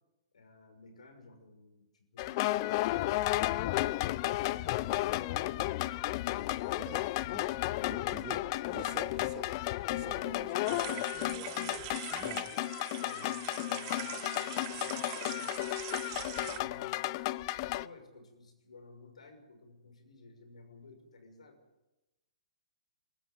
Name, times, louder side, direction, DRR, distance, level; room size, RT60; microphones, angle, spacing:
voice 1, 0.3-5.7 12.2-12.5 12.9-15.6 16.3-17.0 17.6-21.6, left 3 dB, 90° left, 5 dB, 6.0 m, -56 dB
sound 1, 2.2-17.9, left 17 dB, 40° left, 0.6 m, -33 dB
voice 2, 7.8-9.6 9.9-12.5, right 9 dB, 25° right, 9 dB, 1.6 m, -48 dB
sound 2, 10.6-16.6, right 19 dB, 40° right, 0.6 m, -43 dB
22.0 x 13.5 x 9.3 m, 1.1 s
hypercardioid pair, 140°, 4 cm